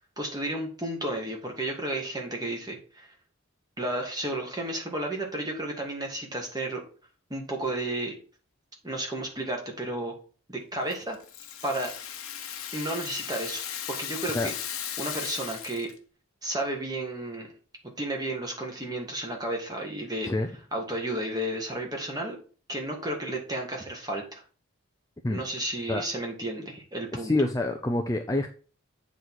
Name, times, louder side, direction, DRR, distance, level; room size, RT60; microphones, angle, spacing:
voice 1, 0.2-3.1 3.8-6.8 7.3-8.2 8.8-10.1 10.5-11.2 11.6-11.9 12.7-13.6 13.9-14.5 15.0-15.9 16.4-17.5 18.0-20.3 20.7-22.4 22.7-24.4 25.3-27.3, right 1 dB, 20° right, 1 dB, 1.7 m, -32 dB
Rattle (instrument), 10.9-16.0, left 9 dB, 80° left, 1.0 m, -37 dB
voice 2, 27.1-28.5, left 2 dB, 15° left, 5 dB, 0.4 m, -26 dB
8.0 x 4.1 x 4.6 m, 0.38 s
head